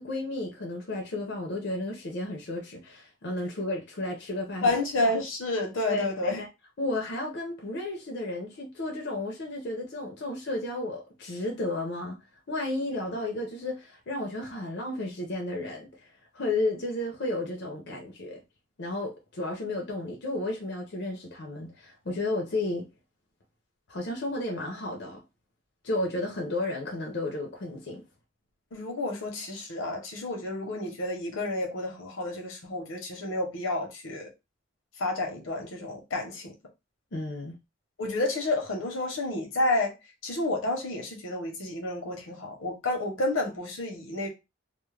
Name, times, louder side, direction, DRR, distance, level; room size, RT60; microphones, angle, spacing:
voice 1, 0.0-4.8 5.9-6.5 6.8-12.2 12.5-18.4 18.8-22.9 23.9-25.2 25.8-28.0 37.1-37.5, left 2 dB, 55° left, 0.5 m, -33 dB
voice 2, 4.6-6.4 28.7-34.3 35.0-36.5 38.0-39.9 40.2-44.3, left 2 dB, 80° left, 0.8 m, -30 dB
2.2 x 2.1 x 3.1 m
head